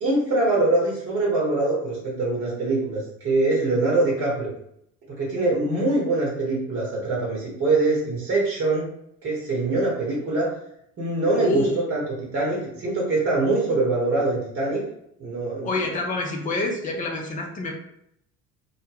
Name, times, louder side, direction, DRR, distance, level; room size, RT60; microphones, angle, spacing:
voice 1, 0.0-4.5 5.2-8.9 9.2-10.5 11.0-14.8 15.2-15.8, right 2 dB, 30° right, -3 dB, 0.9 m, -23 dB
voice 2, 11.3-11.8 15.6-17.7, left 2 dB, 20° left, 1 dB, 0.5 m, -26 dB
2.1 x 2.1 x 3.2 m, 0.73 s
figure-of-eight pair, 60°, 43 cm